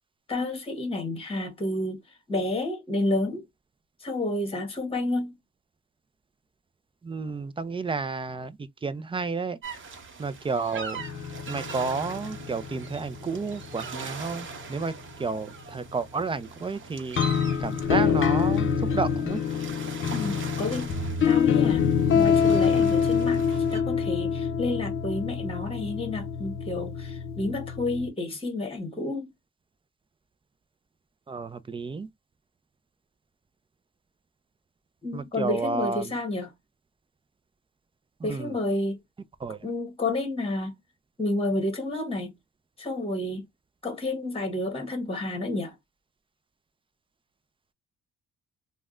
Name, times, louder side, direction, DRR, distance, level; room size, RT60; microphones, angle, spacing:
voice 1, 0.3-2.0 2.3-3.4 4.0-5.3 20.1-20.9 21.2-21.9 22.1-29.3 35.0-36.5 38.2-39.0 39.6-40.7 41.2-42.3 42.8-43.4 43.8-45.7, left 2 dB, 20° left, 1.3 m, -30 dB
voice 2, 7.0-9.6 10.2-11.0 11.5-14.9 15.2-17.2 17.6-18.7 18.9-19.4 31.3-32.1 35.1-36.1 38.2-38.6 39.4-39.6, right 4 dB, 20° right, 0.4 m, -31 dB
sound 1, 9.6-23.8, right 5 dB, 40° right, 0.9 m, -42 dB
sound 2, 11.0-15.3 17.1-28.1, left 7 dB, 45° left, 0.6 m, -26 dB
3.3 x 2.2 x 2.4 m
cardioid pair, 90°, 30 cm